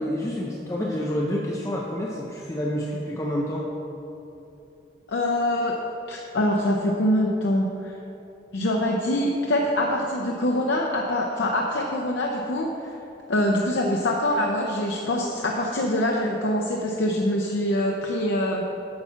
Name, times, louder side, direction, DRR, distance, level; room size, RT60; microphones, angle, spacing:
voice 1, 0.0-3.6, equal, 15° left, -3 dB, 0.6 m, -28 dB
voice 2, 5.1-5.8 6.1-8.0 8.5-12.9 13.3-18.6, left 1 dB, 80° left, 0 dB, 0.7 m, -24 dB
8.7 x 5.9 x 5.6 m, 3.0 s
head